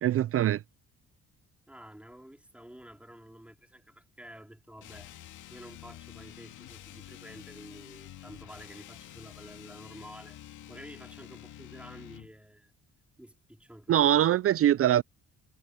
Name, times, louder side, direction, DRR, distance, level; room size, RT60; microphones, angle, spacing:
voice 1, 0.0-0.6 13.9-15.0, right 11 dB, 50° right, 0.4 m, -23 dB
voice 2, 1.7-5.1 5.5-10.4 10.7-12.7 13.2-14.2, equal, 5° right, 3.0 m, -50 dB
sound 1, 4.8-12.3, left 13 dB, 80° left, 2.3 m, -48 dB
cardioid pair, 90°, 30 cm